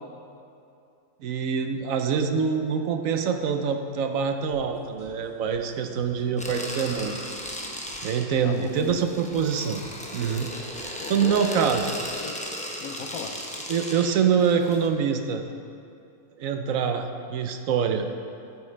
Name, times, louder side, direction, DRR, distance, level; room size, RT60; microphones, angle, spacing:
voice 1, 1.2-7.2 8.0-9.8 10.1-10.5 10.8-11.9 13.7-15.4 16.4-18.0, right 6 dB, 70° right, 6 dB, 1.0 m, -25 dB
sound 1, 4.5-12.2, equal, 35° right, 3.0 m, -52 dB
sound 2, 6.4-14.9, equal, 5° left, 0.7 m, -36 dB
voice 2, 8.4-9.1 11.0-11.6 11.9-12.5 12.8-13.4, left 6 dB, 70° left, 6 dB, 1.1 m, -38 dB
12.5 x 9.1 x 3.3 m, 2.6 s
omnidirectional pair, 1.5 m